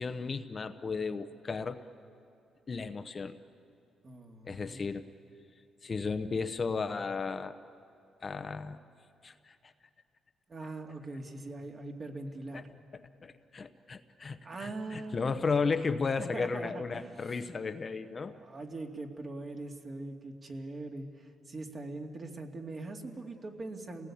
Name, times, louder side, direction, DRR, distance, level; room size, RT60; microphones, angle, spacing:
voice 1, 0.0-1.8 2.7-3.3 4.5-5.0 5.8-7.5 8.2-8.8 9.2-9.6 12.5-12.6 13.2-18.3, left 4 dB, 35° left, 8 dB, 0.9 m, -34 dB
voice 2, 4.0-4.8 10.5-12.7 14.4-15.4 16.2-17.4 18.2-24.1, right 2 dB, 40° right, 2 dB, 2.5 m, -42 dB
28.0 x 18.5 x 8.6 m, 2.5 s
cardioid pair, 90°, 0 cm